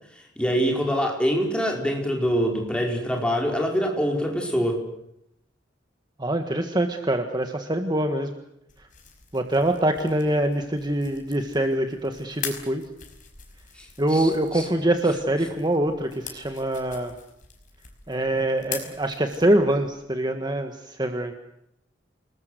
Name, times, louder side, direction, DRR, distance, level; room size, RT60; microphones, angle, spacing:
voice 1, 0.2-4.8 13.7-14.7, equal, 5° left, 0 dB, 5.0 m, -25 dB
voice 2, 6.2-8.3 9.3-12.8 14.0-17.1 18.1-21.4, right 1 dB, 25° right, 5 dB, 1.6 m, -24 dB
sound 1, 8.7-19.9, left 7 dB, 45° left, 5.5 m, -42 dB
28.5 x 20.5 x 8.1 m, 0.78 s
head